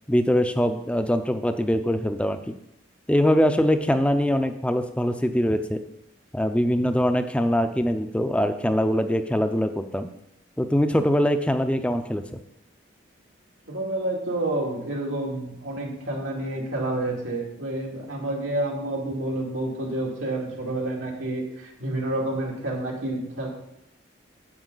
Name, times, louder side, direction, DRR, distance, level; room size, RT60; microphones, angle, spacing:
voice 1, 0.1-2.5 3.1-5.8 6.3-10.1 10.6-12.2, equal, 5° left, 9 dB, 0.5 m, -23 dB
voice 2, 13.7-23.5, right 1 dB, 90° right, -2 dB, 2.4 m, -29 dB
9.8 x 7.9 x 3.9 m, 0.79 s
head